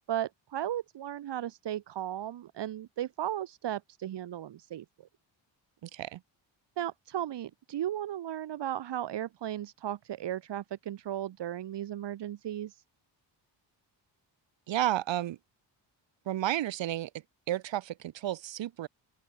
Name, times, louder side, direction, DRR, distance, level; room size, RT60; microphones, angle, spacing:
voice 1, 0.1-4.8 6.8-12.8, right 11 dB, 70° right, 2.8 m, -35 dB
voice 2, 5.8-6.2 14.7-15.4 16.2-17.1 17.5-18.9, right 13 dB, 85° right, 6.5 m, -32 dB
open air
cardioid pair, 115°, 43 cm